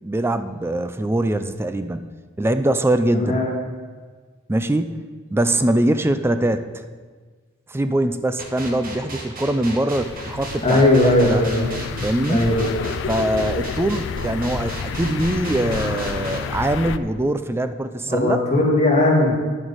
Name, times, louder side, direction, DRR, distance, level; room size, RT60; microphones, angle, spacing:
voice 1, 0.0-2.1 2.4-3.4 4.5-5.0 5.3-6.7 7.7-11.4 12.0-12.4 13.1-18.4, right 1 dB, 10° right, 10 dB, 0.4 m, -22 dB
voice 2, 3.1-3.5 10.6-11.7 12.3-12.8 18.1-19.3, left 1 dB, 35° left, -3 dB, 1.9 m, -18 dB
sound 1, 8.4-16.4, right 2 dB, 45° right, 1.2 m, -34 dB
sound 2, 10.0-17.0, left 6 dB, 60° left, 0.4 m, -30 dB
9.8 x 7.8 x 4.1 m, 1.5 s
head